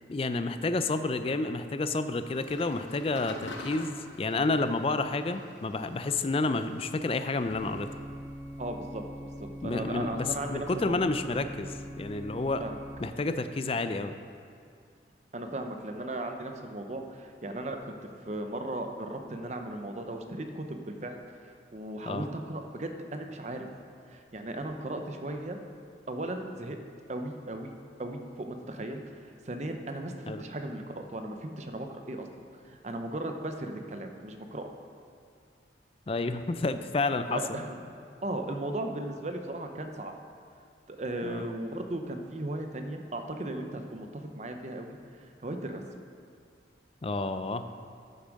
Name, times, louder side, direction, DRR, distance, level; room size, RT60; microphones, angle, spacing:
voice 1, 0.1-7.9 9.6-12.6 13.0-14.1 22.1-22.3 30.3-30.4 36.1-37.6 41.2-41.5 47.0-47.6, left 3 dB, 30° left, 10 dB, 0.4 m, -30 dB
sound 1, 2.3-8.0, left 2 dB, 75° left, 1.1 m, -47 dB
sound 2, 7.5-13.0, equal, 75° right, 2.4 m, -42 dB
voice 2, 8.6-9.0 9.4-11.1 12.6-12.8 15.3-17.9 18.2-21.2 21.4-23.7 24.1-25.6 26.1-26.8 27.1-27.7 28.0-32.3 32.6-34.7 37.3-37.8 38.2-40.1 40.9-45.0 45.4-45.8, right 1 dB, 40° right, 5 dB, 0.7 m, -36 dB
9.6 x 7.0 x 5.2 m, 2.3 s
head